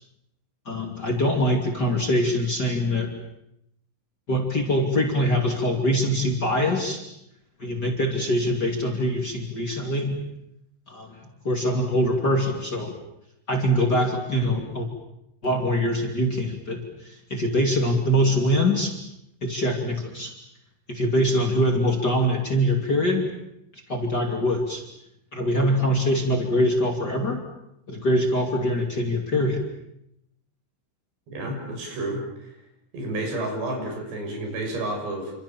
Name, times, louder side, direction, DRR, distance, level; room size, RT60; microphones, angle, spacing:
voice 1, 0.7-3.1 4.3-7.0 7.6-10.2 10.9-11.2 11.4-12.9 13.5-14.9 15.4-19.0 19.4-20.3 20.9-23.3 23.7-24.8 25.3-27.4 27.9-29.6, equal, 30° left, 2 dB, 2.7 m, -23 dB
voice 2, 31.3-32.5 32.9-35.3, right 1 dB, 85° right, 2 dB, 8.6 m, -30 dB
28.0 x 26.5 x 7.3 m, 0.79 s
omnidirectional pair, 4.8 m